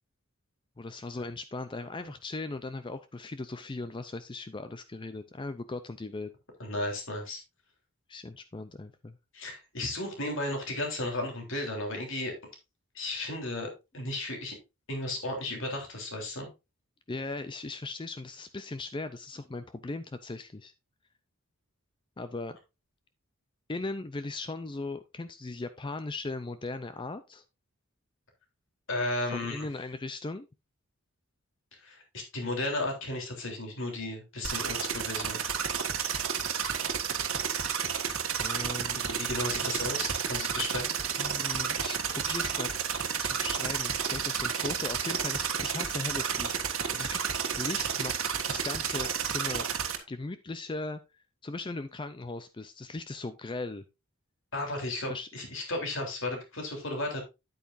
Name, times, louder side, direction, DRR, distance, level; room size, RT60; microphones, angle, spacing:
voice 1, 0.8-6.3 8.1-9.2 17.1-20.7 22.2-22.6 23.7-27.4 29.3-30.5 38.4-39.0 41.2-42.8 43.2-47.2 47.6-48.2 48.5-49.7 50.1-51.0 51.4-53.8 55.1-55.3, left 3 dB, 20° left, 11 dB, 0.4 m, -38 dB
voice 2, 6.6-7.4 9.3-12.3 12.9-14.5 14.9-16.5 28.9-29.7 31.8-35.4 38.9-40.9 54.5-57.2, left 2 dB, 60° left, 2 dB, 3.3 m, -34 dB
sound 1, 34.4-50.0, right 7 dB, 65° right, 1.5 m, -31 dB
9.4 x 8.6 x 2.6 m, 0.25 s
head